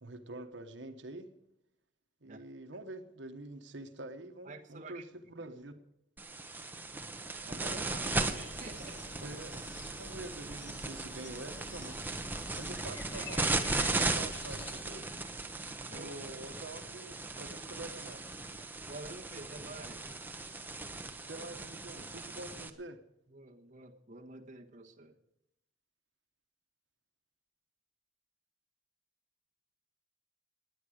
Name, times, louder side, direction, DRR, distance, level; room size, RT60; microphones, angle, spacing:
voice 1, 0.0-1.3 2.2-5.8 9.2-12.0 12.5-15.1 15.9-18.3 21.3-23.0, right 2 dB, 75° right, 7 dB, 1.2 m, -46 dB
voice 2, 4.4-5.0 7.4-9.1 15.8-16.1 18.8-20.1 23.3-25.2, right 2 dB, 40° right, 2 dB, 1.3 m, -49 dB
sound 1, 6.2-22.7, right 2 dB, 10° right, 1.0 m, -37 dB
sound 2, 8.0-14.8, left 3 dB, 75° left, 1.9 m, -50 dB
18.5 x 9.8 x 6.5 m, 0.81 s
head